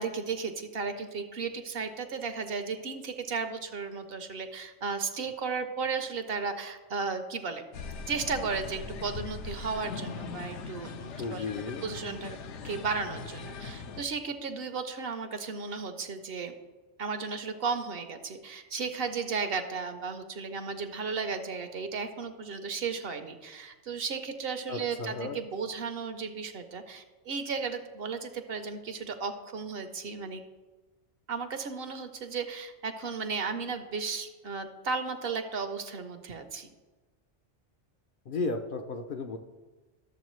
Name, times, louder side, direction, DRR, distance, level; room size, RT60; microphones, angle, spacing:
voice 1, 0.0-7.6 8.1-11.4 11.8-12.4 12.6-16.6 17.0-30.4 31.3-36.7, right 5 dB, 60° right, 8 dB, 0.8 m, -34 dB
sound 1, 7.7-14.0, left 5 dB, 75° left, 1.0 m, -40 dB
voice 2, 11.2-11.8 24.7-25.4 38.3-39.4, left 3 dB, 60° left, 4 dB, 0.6 m, -34 dB
12.0 x 7.0 x 3.1 m, 1.2 s
omnidirectional pair, 1.2 m